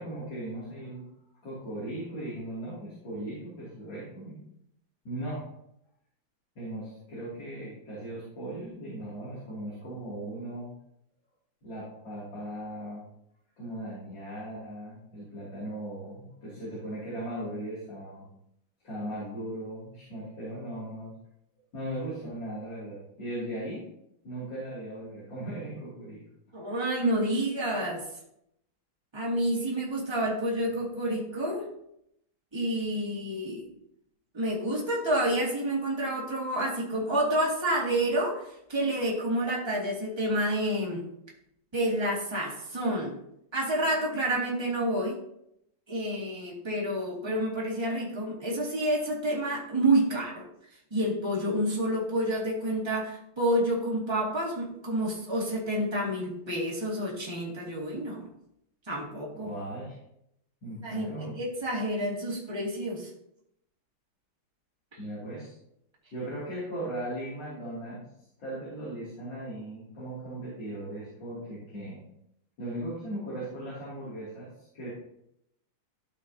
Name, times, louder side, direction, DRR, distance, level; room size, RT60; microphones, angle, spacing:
voice 1, 0.0-4.4 5.1-5.4 6.6-10.7 11.6-13.1 13.6-18.3 18.8-21.1 21.7-23.9 24.2-26.2 26.7-26.8 59.3-60.0 60.6-61.4 65.0-65.6 66.1-68.1 68.4-72.0 72.6-74.9, right 1 dB, 60° left, -8 dB, 3.4 m, -38 dB
voice 2, 26.5-28.0 29.1-31.6 32.5-33.7 34.3-41.0 41.7-43.2 43.5-45.2 45.9-50.4 50.9-58.3 58.9-59.5 60.8-63.1, right 1 dB, 15° right, -4 dB, 2.1 m, -29 dB
13.0 x 5.4 x 2.8 m, 0.77 s
omnidirectional pair, 2.3 m